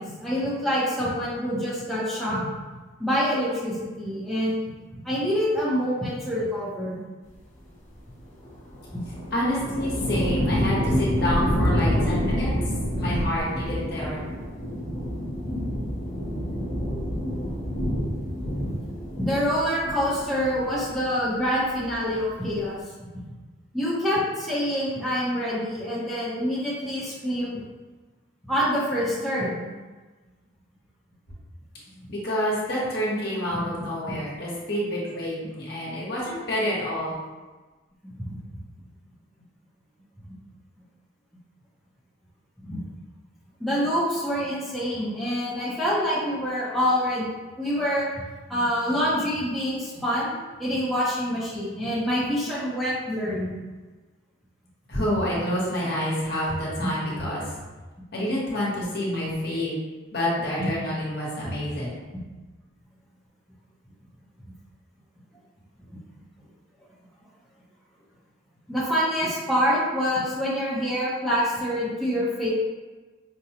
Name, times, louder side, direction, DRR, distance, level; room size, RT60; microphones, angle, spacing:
voice 1, 0.0-2.5 3.0-4.6 4.9-7.0 8.9-9.0 16.3-16.4 18.6-18.7 19.2-22.8 23.1-23.2 23.7-27.6 28.4-29.7 34.1-34.2 38.0-38.3 42.6-42.8 43.6-47.3 47.6-48.1 48.5-53.5 56.8-56.9 60.6-60.7 68.7-72.5, equal, ahead, -10 dB, 0.7 m, -26 dB
sound 1, 8.4-21.2 21.5-22.2, equal, 35° left, 0.8 m, -28 dB
voice 2, 9.3-12.5 12.9-14.2 32.1-37.2 54.9-57.4 58.1-59.7 60.1-61.9, equal, 50° left, -6 dB, 1.1 m, -28 dB
5.0 x 2.2 x 2.8 m, 1.3 s
head